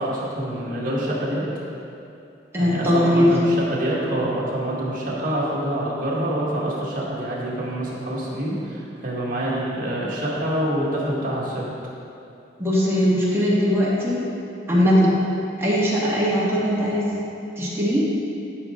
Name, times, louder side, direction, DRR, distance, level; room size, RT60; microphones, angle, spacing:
voice 1, 0.0-1.4 2.6-11.7, right 1 dB, 50° right, -6 dB, 1.9 m, -26 dB
voice 2, 2.5-3.4 12.6-14.2 14.7-15.1 15.6-17.1 17.6-18.0, equal, 15° right, -7 dB, 1.9 m, -20 dB
12.5 x 6.0 x 3.8 m, 2.7 s
head